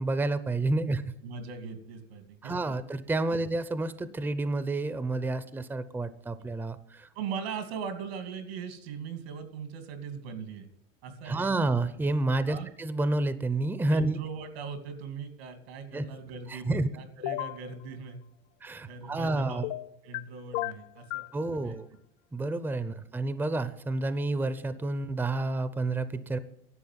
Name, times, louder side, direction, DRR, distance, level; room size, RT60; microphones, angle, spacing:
voice 1, 0.0-1.0 2.4-7.1 11.2-14.2 15.9-16.0 16.5-16.9 18.6-19.7 21.3-21.9 22.3-26.4, right 2 dB, 5° right, 13 dB, 0.6 m, -29 dB
voice 2, 1.2-2.5 7.1-10.7 11.0-11.7 12.5-12.7 13.9-18.2 18.8-21.2 21.6-21.8 22.9-23.0, right 6 dB, 85° right, 8 dB, 2.6 m, -40 dB
sound 1, 17.2-17.6 19.6-20.2 20.5-21.3, left 18 dB, 55° left, 0.5 m, -33 dB
11.0 x 7.5 x 7.5 m, 0.74 s
supercardioid pair, 125°, 30 cm